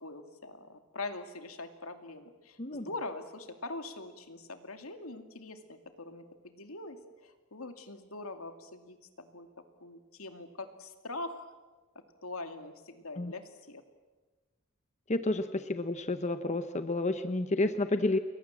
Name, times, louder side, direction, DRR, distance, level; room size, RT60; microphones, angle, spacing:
voice 1, 0.0-9.5 9.8-11.4 12.2-13.8, left 2 dB, 80° left, 7 dB, 2.5 m, -43 dB
voice 2, 15.1-18.2, left 2 dB, 35° left, 9 dB, 0.9 m, -30 dB
30.0 x 22.5 x 7.6 m, 1.3 s
head